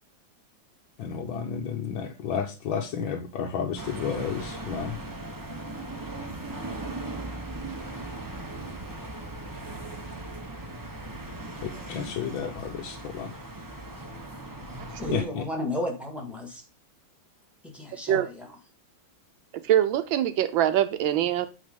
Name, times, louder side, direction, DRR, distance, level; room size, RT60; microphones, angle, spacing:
voice 1, 1.0-5.0 11.6-13.3 15.1-15.5, left 7 dB, 75° left, 2 dB, 1.6 m, -32 dB
sound 1, 3.8-15.2, right 2 dB, 30° right, 0.3 m, -38 dB
voice 2, 15.0-16.6 17.6-18.5, left 1 dB, ahead, 1 dB, 1.6 m, -33 dB
voice 3, 19.5-21.5, right 11 dB, 80° right, 10 dB, 1.4 m, -23 dB
8.9 x 3.5 x 5.1 m, 0.32 s
omnidirectional pair, 2.2 m